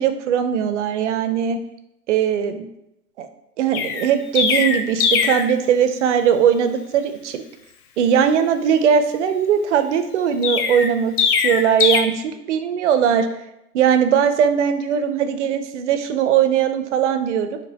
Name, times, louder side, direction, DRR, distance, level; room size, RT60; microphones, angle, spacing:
voice 1, 0.0-1.6 2.1-2.7 3.2-3.3 3.6-7.4 8.0-11.1 11.4-13.3 13.7-17.6, right 8 dB, 50° right, 9 dB, 0.5 m, -19 dB
Chirp tweet, 3.7-5.5 10.4-12.0, left 6 dB, 65° left, 0.6 m, -20 dB
4.4 x 2.9 x 2.8 m, 0.84 s
hypercardioid pair, 125°, 48 cm